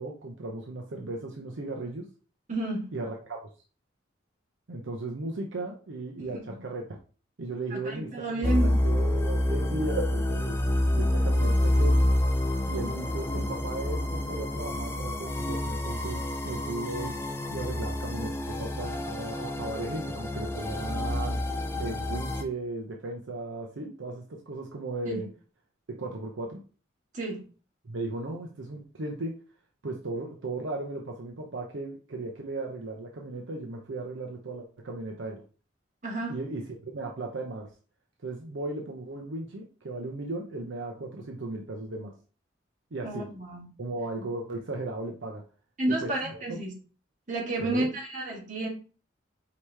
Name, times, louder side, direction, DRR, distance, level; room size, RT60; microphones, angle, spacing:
voice 1, 0.0-2.1 2.9-3.4 4.7-7.0 7.4-8.5 8.8-10.6 10.9-12.0 12.7-17.1 17.5-21.4 21.8-25.3 26.0-26.6 27.8-29.3 29.8-35.4 36.3-37.7 38.2-42.1 42.9-43.3 43.8-45.4 45.9-46.6 47.6-47.9, right 2 dB, 75° right, 1 dB, 0.7 m, -36 dB
voice 2, 2.5-2.9 7.7-8.8 25.0-25.2 27.1-27.4 36.0-36.3 43.0-43.6 45.8-46.7 47.3-48.7, right 2 dB, 40° right, -2 dB, 1.6 m, -31 dB
sound 1, 8.4-22.4, left 1 dB, 10° left, 0.4 m, -28 dB
4.7 x 3.0 x 3.4 m, 0.37 s
head